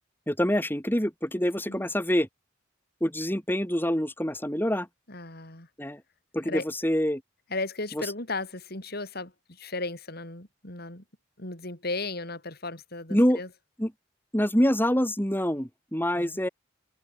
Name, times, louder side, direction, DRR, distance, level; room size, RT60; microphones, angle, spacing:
voice 1, 0.3-2.3 3.0-4.9 5.8-6.0 6.3-7.2 8.0-8.1 13.1-13.4 13.8-13.9 14.3-16.5, equal, 10° left, 4.2 m, -26 dB
voice 2, 5.1-5.7 6.4-6.7 7.5-11.0 11.4-13.5 16.2-16.4, left 3 dB, 50° left, 6.0 m, -35 dB
head